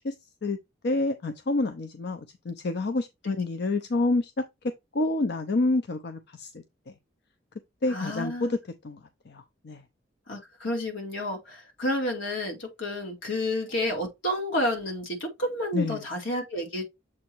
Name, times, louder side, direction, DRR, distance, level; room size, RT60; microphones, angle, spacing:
voice 1, 0.8-4.3 4.9-6.6 7.8-8.6 8.8-9.8 15.7-16.0, left 2 dB, 60° left, 0.6 m, -28 dB
voice 2, 7.9-8.5 10.3-16.8, left 1 dB, 80° left, 2.4 m, -30 dB
7.3 x 2.9 x 4.5 m
head